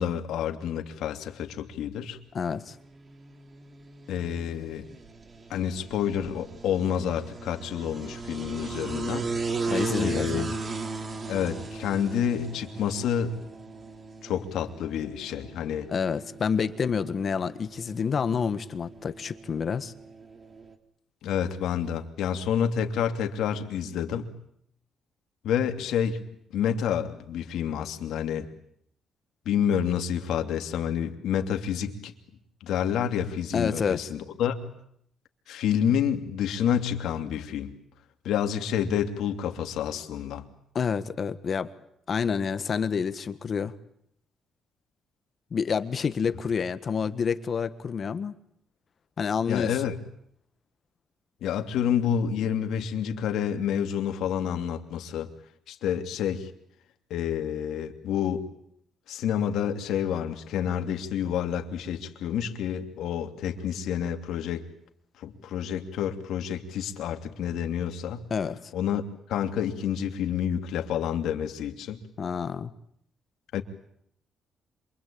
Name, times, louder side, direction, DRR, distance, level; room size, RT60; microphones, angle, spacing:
voice 1, 0.0-2.2 4.1-4.9 5.5-9.3 10.0-10.5 11.3-13.4 14.2-15.9 21.2-24.3 25.4-26.2 26.5-28.5 29.4-32.1 32.6-34.7 35.5-37.7 38.2-40.4 49.5-50.0 51.4-55.3 55.7-56.5 57.1-58.5 59.1-64.7 65.2-68.3 68.7-69.0 69.3-72.0 73.5-73.6, left 8 dB, 80° left, 5 dB, 2.8 m, -29 dB
voice 2, 2.3-2.7 9.7-10.5 15.9-19.9 33.5-34.1 40.7-41.7 42.1-43.7 45.5-48.3 49.2-49.9 68.3-68.7 72.2-72.7, left 6 dB, 45° left, 12 dB, 1.6 m, -28 dB
sound 1, 2.7-20.7, right 4 dB, 40° right, 3.3 m, -37 dB
27.5 x 24.5 x 8.8 m, 0.71 s
cardioid pair, 90°, 0 cm